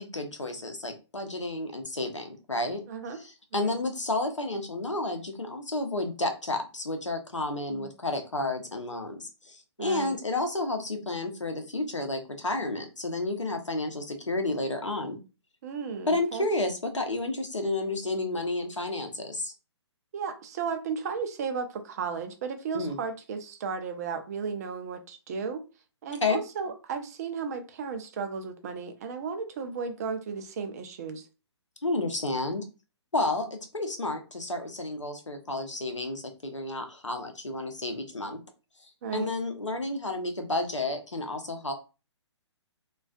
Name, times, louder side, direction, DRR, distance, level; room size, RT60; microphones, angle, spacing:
voice 1, 0.0-2.8 3.1-15.2 16.1-19.5 22.7-23.0 26.2-26.4 31.8-32.6 33.1-38.4 38.8-41.7, left 2 dB, 85° left, 0.6 m, -31 dB
voice 2, 2.9-3.2 3.5-3.7 7.7-7.9 9.8-10.2 15.6-16.5 20.1-25.6 26.0-31.2 39.0-39.3, right 5 dB, 35° right, 0.4 m, -34 dB
2.4 x 2.3 x 2.3 m
figure-of-eight pair, 130°, 15 cm